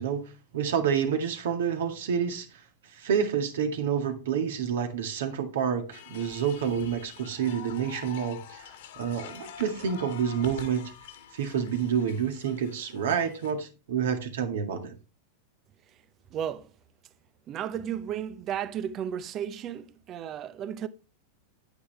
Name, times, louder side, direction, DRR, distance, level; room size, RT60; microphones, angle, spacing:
voice 1, 0.0-2.5 2.9-8.7 9.0-10.9 11.3-14.9, right 7 dB, 60° right, 1.9 m, -28 dB
sound 1, 5.9-13.5, left 9 dB, 55° left, 1.6 m, -46 dB
voice 2, 16.3-16.7 17.5-20.9, right 9 dB, 30° right, 0.8 m, -34 dB
9.5 x 9.3 x 3.3 m
figure-of-eight pair, 90°, 0 cm